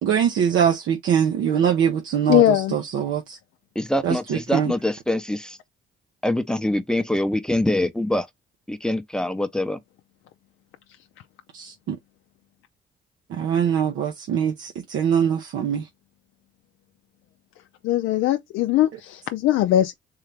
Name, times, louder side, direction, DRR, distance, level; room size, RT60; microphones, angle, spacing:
voice 1, 0.0-3.4 4.0-4.7 11.5-12.0 13.3-15.9, right 8 dB, 80° right, 0.7 m, -23 dB
voice 2, 2.3-2.8 17.8-19.9, left 13 dB, 80° left, 0.4 m, -20 dB
voice 3, 3.8-5.6 6.2-8.3 8.7-9.8, left 1 dB, 5° left, 0.6 m, -24 dB
3.8 x 2.8 x 3.3 m
cardioid pair, 90°, 20 cm